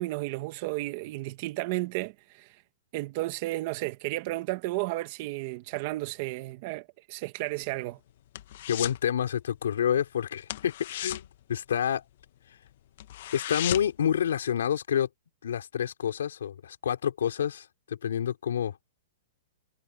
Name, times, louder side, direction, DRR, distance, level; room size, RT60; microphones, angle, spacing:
voice 1, 0.0-2.6 2.9-8.0, right 19 dB, 35° right, 1.4 m, -33 dB
sound 1, 7.5-9.1 9.3-9.6 9.9-10.1 10.4-12.3 12.6-12.7 13.0-14.1 14.4-14.5, left 13 dB, 50° left, 1.0 m, -36 dB
voice 2, 8.7-12.0 13.3-15.1 15.4-18.8, left 9 dB, 80° left, 4.5 m, -28 dB
hypercardioid pair, 170°, 0 cm